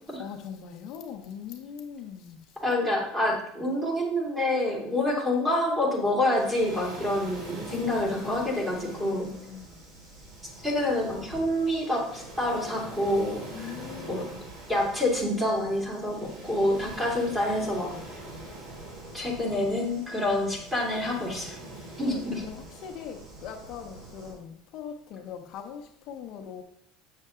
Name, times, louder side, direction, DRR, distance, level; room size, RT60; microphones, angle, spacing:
voice 1, 0.2-2.4 7.7-9.7 13.5-14.4 22.0-26.6, left 8 dB, 55° left, 0.8 m, -40 dB
voice 2, 2.6-9.3 10.6-13.7 14.1-14.2 14.7-18.2 19.1-21.6 22.0-22.4, left 1 dB, 10° right, 2.5 m, -27 dB
Waves surf, 6.3-24.4, right 1 dB, 55° right, 3.0 m, -44 dB
7.4 x 6.6 x 3.7 m
supercardioid pair, 135°, 0 cm